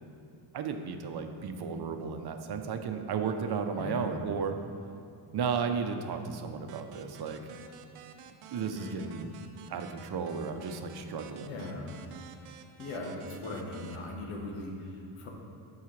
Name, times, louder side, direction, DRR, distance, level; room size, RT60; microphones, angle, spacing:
voice 1, 0.5-4.6 5.3-7.4 8.5-9.3 9.7-11.6, right 6 dB, 50° right, 6 dB, 0.7 m, -34 dB
voice 2, 3.8-4.1 8.6-9.0 11.4-11.8 12.8-15.3, left 2 dB, 80° left, 0 dB, 1.4 m, -39 dB
sound 1, 6.7-14.0, right 7 dB, 85° right, 0.7 m, -51 dB
12.5 x 4.8 x 3.3 m, 2.5 s
cardioid pair, 110°, 50 cm